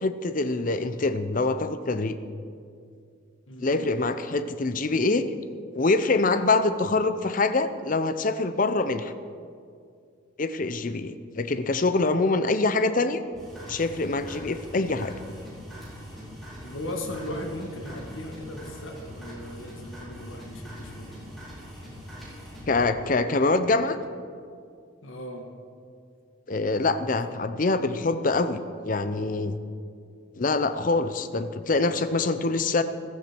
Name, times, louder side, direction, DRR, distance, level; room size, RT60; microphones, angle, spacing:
voice 1, 0.0-2.2 3.6-5.2 5.8-9.1 10.4-13.2 13.7-15.1 22.7-24.0 26.5-29.6 30.4-32.8, left 3 dB, 40° left, 11 dB, 0.6 m, -25 dB
voice 2, 3.5-3.9 16.6-21.2 25.0-25.5, left 1 dB, 75° left, 3 dB, 1.7 m, -37 dB
sound 1, 13.3-22.8, equal, ahead, 4.2 m, -42 dB
15.0 x 13.5 x 4.5 m, 2.3 s
head